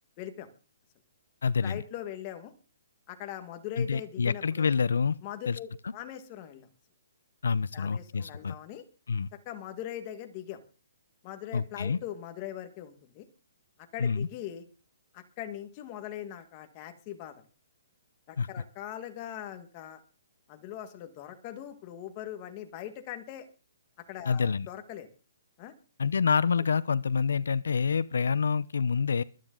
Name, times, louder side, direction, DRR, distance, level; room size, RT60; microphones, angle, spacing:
voice 1, 0.2-0.5 1.6-2.5 3.1-4.7 5.2-6.7 7.7-8.8 9.4-10.6 11.2-13.3 13.9-14.6 15.1-17.4 18.3-20.0 20.5-23.5 24.1-25.1 25.6-25.7, left 11 dB, 20° left, 1.5 m, -41 dB
voice 2, 1.4-1.8 3.8-5.2 5.5-5.6 5.8-5.9 7.4-8.6 9.1-9.3 11.5-12.0 14.0-14.3 18.4-18.5 24.3-24.7 26.0-29.2, left 5 dB, 85° left, 0.7 m, -27 dB
23.0 x 9.2 x 3.8 m
hypercardioid pair, 180°, 0 cm